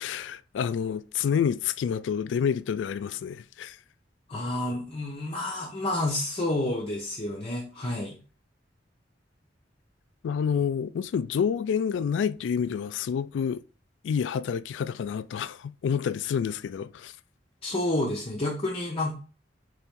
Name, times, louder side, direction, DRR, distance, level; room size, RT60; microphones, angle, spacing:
voice 1, 0.0-3.8 10.2-13.6 14.0-17.1, left 7 dB, 80° left, 0.3 m, -28 dB
voice 2, 4.3-8.2 17.6-19.1, left 1 dB, 35° left, 0.8 m, -29 dB
4.2 x 3.5 x 3.6 m
head